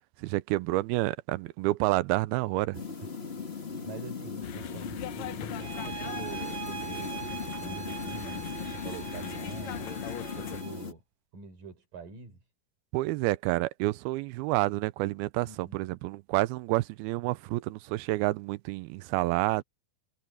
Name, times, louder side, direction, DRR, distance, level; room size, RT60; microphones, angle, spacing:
voice 1, 0.2-2.8 12.9-19.6, right 19 dB, 85° right, 2.5 m, -29 dB
sound 1, 2.7-10.9, left 5 dB, 30° left, 1.1 m, -38 dB
voice 2, 3.8-10.0 10.4-11.0 11.3-12.4 15.5-15.9, right 4 dB, 60° right, 6.0 m, -45 dB
sound 2, 4.4-10.6, left 12 dB, 75° left, 1.6 m, -42 dB
sound 3, 5.6-10.9, right 10 dB, 35° right, 1.6 m, -42 dB
omnidirectional pair, 4.3 m